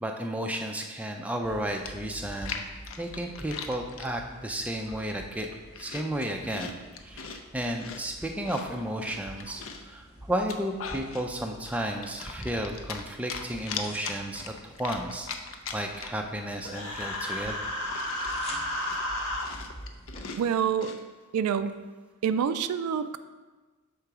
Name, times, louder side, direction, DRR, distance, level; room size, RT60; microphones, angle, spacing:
voice 1, 0.0-2.6 3.0-5.5 5.8-15.3 15.7-17.7, right 1 dB, 5° right, 2 dB, 0.3 m, -33 dB
sound 1, 1.4-20.3, equal, 25° left, 0.7 m, -48 dB
Chewing mastication, 1.9-4.1 4.6-5.0 5.3-7.4 7.8-9.9 10.3-11.3 11.6-13.0 13.3-16.3 16.6-16.7 17.0-21.0, left 6 dB, 65° left, 0.5 m, -40 dB
Human voice, 16.6-19.4, left 1 dB, 80° left, 1.1 m, -32 dB
voice 2, 20.4-20.9 21.3-21.8 22.2-23.2, right 7 dB, 85° right, 11 dB, 0.3 m, -27 dB
6.8 x 3.8 x 4.7 m, 1.3 s
head